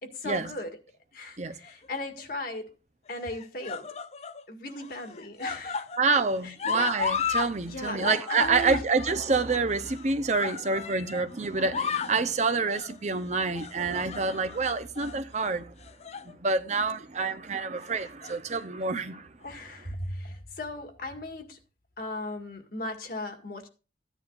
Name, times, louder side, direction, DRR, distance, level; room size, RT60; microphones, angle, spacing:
voice 1, 0.0-0.8 1.1-2.7 3.1-3.9 4.5-5.8 6.4-6.5 7.7-8.0 8.3-8.8 10.3-10.4 19.4-21.6 22.0-23.7, left 1 dB, 55° left, 1.9 m, -37 dB
sound 1, 1.7-2.2 3.1-4.4 4.8-7.5 7.8-11.3 11.6-12.2 12.7-13.0 13.6-14.6 15.0-15.2 15.8-16.3 16.7-16.9 18.0-18.6 19.5-19.6, left 6 dB, 40° left, 0.5 m, -34 dB
voice 2, 6.0-15.7 16.2-19.3, right 4 dB, 40° right, 0.8 m, -27 dB
sound 2, 6.7-9.0 9.2-10.1 10.6-11.3 11.9-12.4 13.2-13.6 14.5-14.8, right 3 dB, 15° right, 1.4 m, -47 dB
15.0 x 10.0 x 2.5 m
head